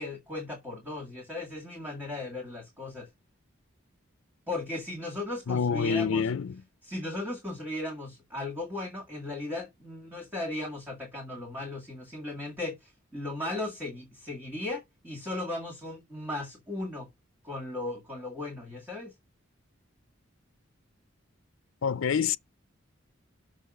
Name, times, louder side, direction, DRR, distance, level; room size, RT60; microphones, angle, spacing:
voice 1, 0.0-3.1 4.5-6.3 6.8-17.1 17.4-19.1, left 2 dB, 10° right, 2.1 m, -36 dB
voice 2, 5.5-6.6 21.8-22.4, left 6 dB, 80° left, 0.5 m, -27 dB
6.5 x 5.5 x 5.2 m
head